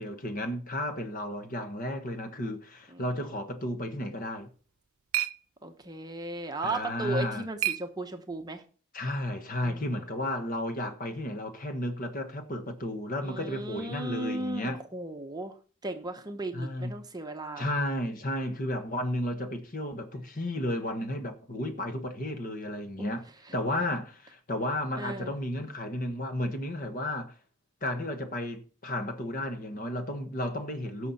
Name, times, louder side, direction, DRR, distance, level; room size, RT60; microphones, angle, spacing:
voice 1, 0.0-4.5 6.6-7.4 8.9-14.8 16.5-16.9 17.6-23.3 23.5-27.3 27.8-31.1, left 1 dB, 40° left, 1.4 m, -33 dB
sound 1, 4.4-8.6, right 14 dB, 80° right, 0.7 m, -37 dB
voice 2, 5.6-8.6 9.6-9.8 13.2-15.6 15.8-17.7 23.0-23.1 23.4-23.9 24.9-25.3, right 2 dB, 20° right, 0.9 m, -36 dB
17.0 x 6.4 x 4.2 m
head